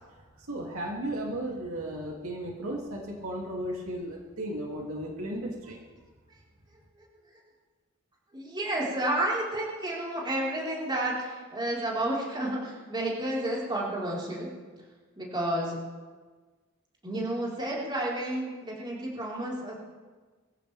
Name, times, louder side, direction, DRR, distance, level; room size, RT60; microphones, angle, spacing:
voice 1, 0.0-5.8, right 1 dB, 75° right, -2 dB, 2.7 m, -35 dB
voice 2, 7.0-7.3 8.3-14.5 15.2-15.8 17.0-19.7, right 1 dB, 20° right, -5 dB, 4.4 m, -31 dB
23.5 x 15.0 x 3.5 m, 1.4 s
head